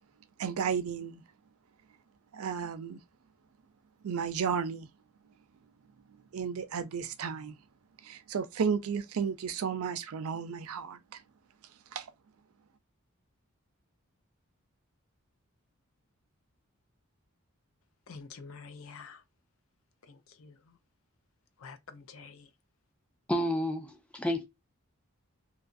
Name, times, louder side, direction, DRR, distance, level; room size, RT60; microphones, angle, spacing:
voice 1, 0.4-1.2 2.3-3.0 4.0-4.9 6.3-7.5 8.0-11.2 11.9-12.1, right 6 dB, 75° right, 0.4 m, -33 dB
voice 2, 18.1-19.2 20.0-20.8 21.6-22.5, left 5 dB, 65° left, 0.5 m, -48 dB
voice 3, 23.3-24.4, equal, 5° left, 0.4 m, -30 dB
2.7 x 2.4 x 2.5 m
head